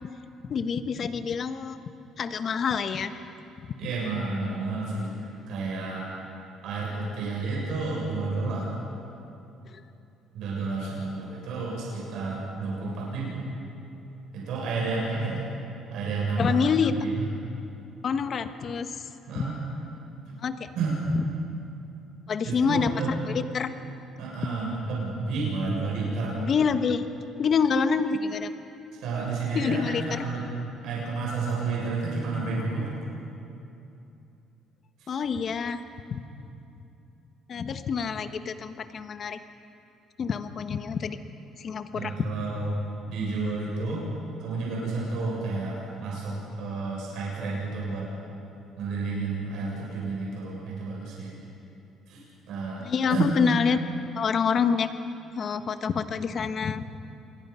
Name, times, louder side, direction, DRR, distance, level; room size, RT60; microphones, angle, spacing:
voice 1, 0.5-1.8 2.2-3.1 16.4-16.9 18.0-19.0 19.3-19.5 20.4-20.7 21.1-21.2 22.3-22.9 23.3-23.7 26.4-27.0 27.4-28.5 29.5-30.2 35.1-35.8 36.1-36.2 37.5-39.4 40.2-41.2 41.6-42.1 52.8-53.8 54.1-54.9 55.4-57.0, left 6 dB, 45° left, 9 dB, 1.3 m, -27 dB
voice 2, 3.8-6.0 6.6-8.7 10.3-13.4 14.3-15.5 15.9-16.6 16.9-17.3 19.3-19.6 20.3-20.4 20.8-21.0 22.4-23.1 24.2-26.4 29.0-30.5 30.8-32.9 35.0-35.1 41.9-42.8 43.1-44.1 44.4-48.1 48.8-51.3 52.1-53.3, right 3 dB, 75° right, -4 dB, 7.2 m, -31 dB
27.5 x 22.0 x 5.7 m, 2.8 s
cardioid pair, 105°, 0 cm